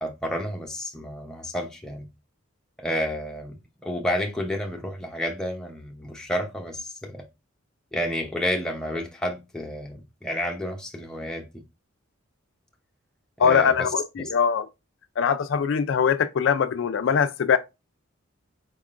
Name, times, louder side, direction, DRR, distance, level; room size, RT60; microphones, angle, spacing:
voice 1, 0.0-2.1 2.8-7.3 7.9-11.5 13.4-13.9 14.2-14.3, equal, 5° left, 0.7 m, -30 dB
voice 2, 13.4-14.7 15.2-17.6, left 7 dB, 65° left, 0.4 m, -22 dB
4.7 x 3.6 x 2.5 m
head